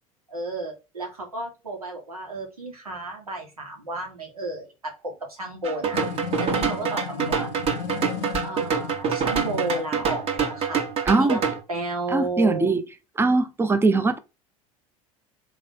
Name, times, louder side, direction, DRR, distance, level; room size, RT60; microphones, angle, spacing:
voice 1, 0.3-7.5 8.4-10.9 11.2-11.4 11.7-12.7, right 2 dB, 85° right, 1.5 m, -33 dB
sound 1, 5.6-11.6, right 6 dB, 35° right, 1.1 m, -26 dB
sound 2, 5.9-9.9, left 9 dB, 55° left, 0.4 m, -35 dB
voice 2, 11.1-11.4 12.1-12.8 13.2-14.2, right 3 dB, 15° right, 0.6 m, -21 dB
3.7 x 3.1 x 4.5 m
figure-of-eight pair, 75°, 18 cm